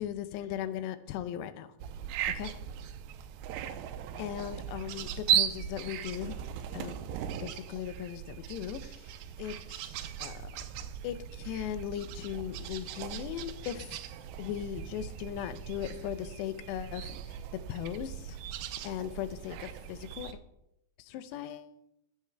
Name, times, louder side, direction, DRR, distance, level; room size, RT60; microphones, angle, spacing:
voice 1, 0.0-1.7 2.4-2.5 4.2-6.4 6.7-7.0 7.4-9.1 9.4-10.4 11.0-14.0 14.4-17.3 17.7-18.4 18.8-20.3 21.0-21.7, left 11 dB, 90° left, 12 dB, 2.8 m, -38 dB
sound 1, 1.8-20.3, right 10 dB, 85° right, 2.7 m, -37 dB
14.5 x 7.3 x 3.3 m, 0.84 s
omnidirectional pair, 4.8 m